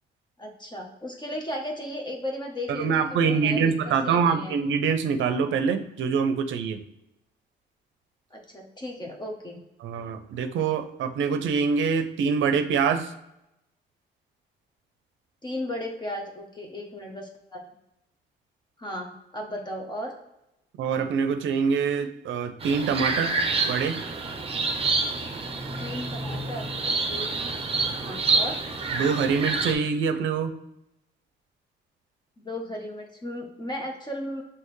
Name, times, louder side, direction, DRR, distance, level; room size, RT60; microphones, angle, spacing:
voice 1, 0.4-4.6 8.3-9.6 15.4-17.6 18.8-20.1 25.8-27.3 28.0-28.6 32.4-34.4, left 1 dB, 20° left, 1 dB, 0.9 m, -35 dB
voice 2, 2.7-6.8 9.8-13.1 20.8-23.3 23.7-24.0 28.9-30.5, right 6 dB, 75° right, 9 dB, 0.6 m, -25 dB
sound 1, 22.6-29.7, right 3 dB, 30° right, 0.7 m, -28 dB
5.6 x 2.9 x 3.2 m, 0.88 s
cardioid pair, 90°, 20 cm